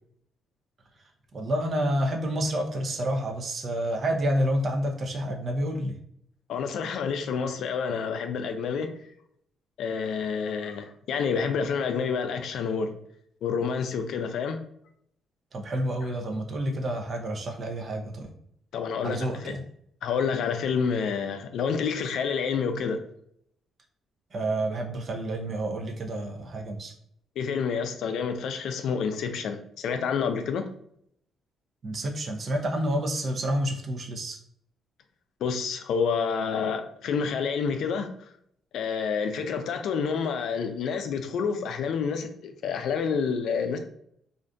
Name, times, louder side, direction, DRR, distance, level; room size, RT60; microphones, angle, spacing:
voice 1, 1.3-6.0 15.5-18.3 19.0-19.6 24.3-26.9 31.8-34.4, right 1 dB, 45° right, 3 dB, 0.5 m, -29 dB
voice 2, 6.5-8.9 9.8-13.0 13.4-14.6 18.7-19.6 20.0-23.0 27.4-30.7 35.4-38.1 38.7-43.8, left 6 dB, 75° left, 7 dB, 0.3 m, -28 dB
2.5 x 2.5 x 2.2 m, 0.69 s
cardioid pair, 90°, 0 cm